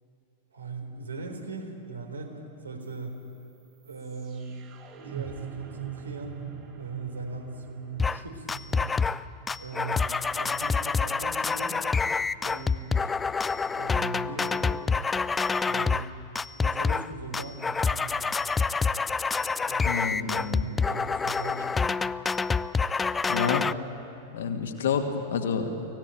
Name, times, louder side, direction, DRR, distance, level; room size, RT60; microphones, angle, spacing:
voice 1, 0.5-3.2 3.8-4.6 5.0-6.4 6.8-9.0 9.6-11.8 12.4-13.2 13.8-15.1 15.6-16.1 16.6-18.2 19.6-21.9, right 3 dB, 75° right, 4 dB, 3.5 m, -39 dB
sound 1, 2.8-12.8, right 7 dB, 30° right, 3.8 m, -44 dB
sound 2, 8.0-8.2 8.5-9.2 9.5-16.1 16.4-17.1 17.3-23.7, left 4 dB, 15° left, 0.5 m, -27 dB
voice 2, 19.8-20.6 23.3-23.7 24.3-25.9, left 6 dB, 60° left, 5 dB, 2.2 m, -29 dB
24.5 x 16.5 x 9.0 m, 2.8 s
figure-of-eight pair, 90°, 0 cm